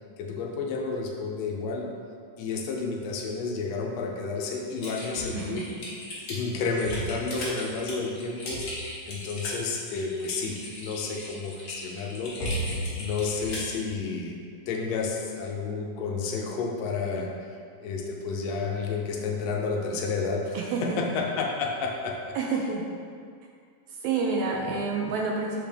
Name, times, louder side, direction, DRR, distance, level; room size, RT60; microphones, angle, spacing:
voice 1, 0.2-1.9 2.4-5.7 6.3-8.6 9.1-12.3 13.0-14.4 14.7-17.3 17.8-22.2, left 4 dB, 75° left, -1 dB, 1.6 m, -31 dB
Typing, 4.8-13.7, equal, 55° left, 1.0 m, -35 dB
voice 2, 5.3-5.8 20.5-20.8 22.3-22.8 24.0-25.6, right 4 dB, 80° right, 0 dB, 1.7 m, -28 dB
7.0 x 5.1 x 3.4 m, 2.2 s
omnidirectional pair, 3.7 m